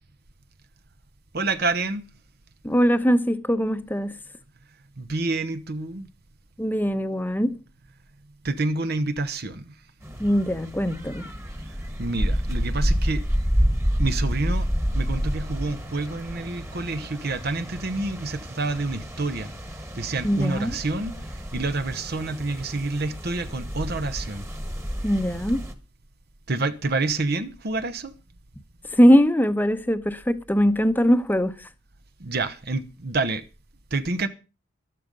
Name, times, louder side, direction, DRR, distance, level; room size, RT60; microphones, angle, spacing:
voice 1, 1.3-2.0 5.0-6.1 8.4-9.7 12.0-13.3 14.0-14.7 14.9-19.5 20.0-24.4 26.5-28.1 32.2-33.4 33.9-34.3, right 3 dB, 50° right, 1.0 m, -28 dB
voice 2, 2.6-4.2 6.6-7.6 10.2-11.3 20.2-20.7 25.0-25.6 28.9-31.5, equal, 10° left, 1.0 m, -21 dB
sound 1, 10.0-25.7, equal, 15° right, 1.6 m, -29 dB
13.0 x 12.5 x 5.4 m
head